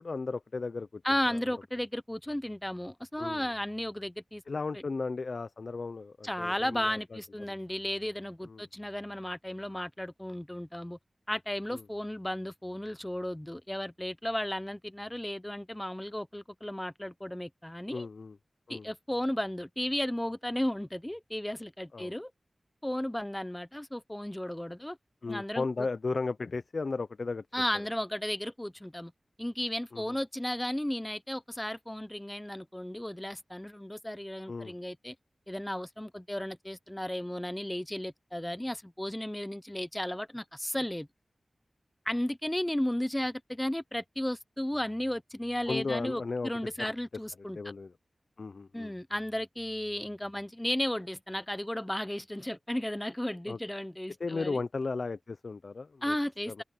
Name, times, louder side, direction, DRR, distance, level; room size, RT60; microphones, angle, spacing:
voice 1, 0.0-1.0 1.3-1.4 3.2-3.5 4.5-7.2 8.4-8.7 11.7-11.8 17.9-18.4 18.7-18.9 21.9-22.2 25.2-27.5 29.9-30.2 34.5-34.7 45.7-46.5 46.8-46.9 47.6-47.9 48.4-48.9 53.5-53.6 54.2-56.2 56.5-56.6, left 3 dB, 70° left, 0.6 m, -35 dB
voice 2, 1.0-4.4 6.2-11.0 11.3-18.1 18.7-22.3 22.8-25.0 25.3-25.6 27.5-29.1 29.4-35.1 35.5-41.1 42.1-47.6 48.7-54.6 56.0-56.6, left 1 dB, 10° left, 0.8 m, -34 dB
open air
wide cardioid pair, 75°, 0 cm